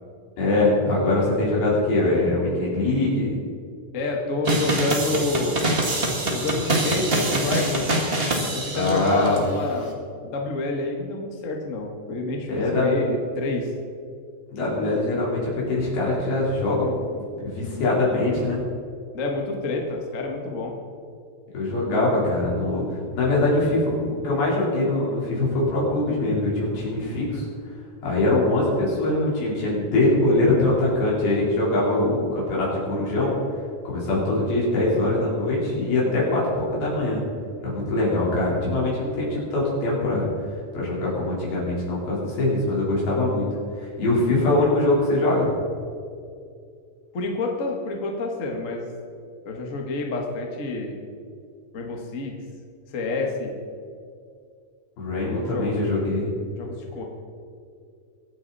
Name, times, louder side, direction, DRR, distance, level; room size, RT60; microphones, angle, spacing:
voice 1, 0.4-3.4 8.7-9.4 12.5-12.9 14.5-18.6 21.5-22.8 23.1-27.5 28.0-33.4 33.8-37.2 37.6-40.3 40.7-43.5 43.8-45.6 55.0-56.3, left 2 dB, 85° left, -5 dB, 5.9 m, -23 dB
voice 2, 3.9-5.6 6.3-8.0 8.5-10.0 10.2-13.7 19.1-20.7 47.1-48.9 49.4-51.0 51.7-52.3 52.9-53.6 55.3-55.9 56.5-57.0, left 2 dB, 45° left, 1 dB, 1.0 m, -28 dB
sound 1, 4.4-9.4, right 1 dB, 45° right, 0.7 m, -25 dB
23.0 x 9.2 x 4.2 m, 2.3 s
omnidirectional pair, 4.2 m